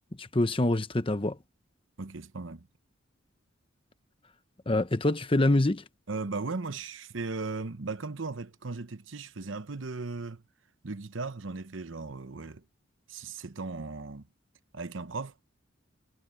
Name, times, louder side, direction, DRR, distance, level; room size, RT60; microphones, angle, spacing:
voice 1, 0.2-1.4 4.7-5.8, left 1 dB, 25° left, 0.9 m, -25 dB
voice 2, 2.0-2.7 6.1-10.4 10.8-12.6 13.1-14.3 14.7-15.4, right 3 dB, 70° right, 1.0 m, -37 dB
head